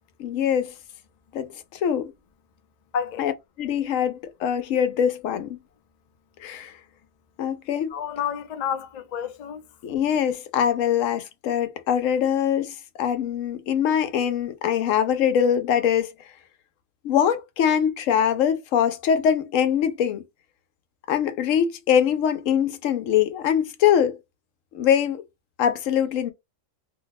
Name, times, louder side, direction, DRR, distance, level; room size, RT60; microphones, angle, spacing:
voice 1, 0.2-0.7 1.3-2.1 3.2-3.3 3.6-5.6 6.4-6.8 7.4-7.9 9.8-16.1 17.0-20.2 21.1-24.2 24.7-25.2 25.6-26.3, left 9 dB, 85° left, 1.0 m, -23 dB
voice 2, 2.9-3.3 7.9-9.6, left 8 dB, 50° left, 0.5 m, -30 dB
2.7 x 2.1 x 4.0 m
omnidirectional pair, 1.3 m